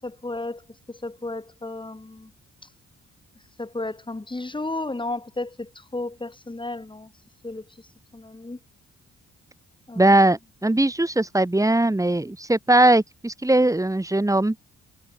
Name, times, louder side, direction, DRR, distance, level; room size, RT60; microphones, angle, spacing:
voice 1, 0.0-2.3 3.6-7.1 7.4-7.6 8.1-8.6 9.9-10.0, left 2 dB, 15° left, 6.9 m, -33 dB
voice 2, 9.9-14.5, right 1 dB, 10° right, 5.1 m, -20 dB
cardioid pair, 90°, 30 cm